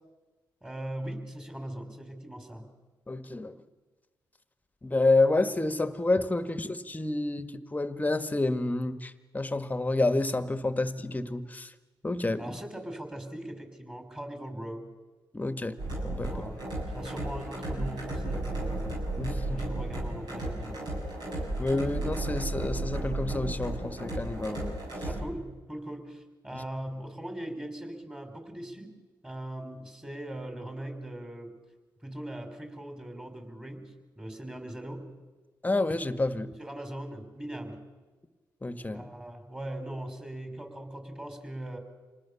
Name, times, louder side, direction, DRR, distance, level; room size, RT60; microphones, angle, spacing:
voice 1, 0.6-2.7 12.4-14.9 16.3-16.7 16.9-19.0 19.4-20.9 25.0-28.9 29.2-31.6 32.0-35.2 36.6-37.9 38.9-41.8, right 1 dB, 15° right, 5 dB, 5.6 m, -40 dB
voice 2, 3.1-3.5 4.8-11.7 12.0-12.4 15.3-15.8 16.0-16.3 19.2-19.6 21.6-24.8 26.5-26.6 35.6-36.5 38.6-39.1, left 2 dB, 20° left, 10 dB, 1.6 m, -29 dB
sound 1, 15.8-25.2, right 1 dB, 65° right, 7.6 m, -34 dB
26.5 x 19.5 x 7.1 m, 1.2 s
supercardioid pair, 60°, 8 cm